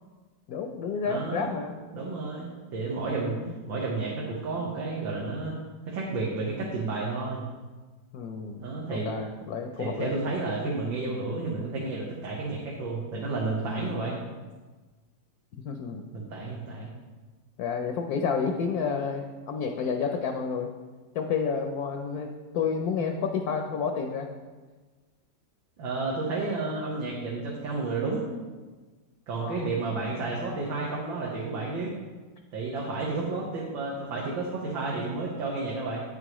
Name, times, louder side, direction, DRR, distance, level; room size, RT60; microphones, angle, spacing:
voice 1, 0.5-1.8 3.0-3.5 8.1-8.6 8.9-10.2 15.6-16.0 17.6-20.7 21.1-24.3 29.4-29.7, left 5 dB, 65° left, 4 dB, 1.0 m, -30 dB
voice 2, 1.0-1.5 1.9-3.4 3.7-5.5 5.8-7.4 8.6-9.1 9.8-14.2 16.1-16.9 25.8-28.3 29.3-31.9 32.5-36.0, right 3 dB, 85° right, -4 dB, 2.0 m, -31 dB
9.4 x 8.4 x 3.1 m, 1.3 s
omnidirectional pair, 2.1 m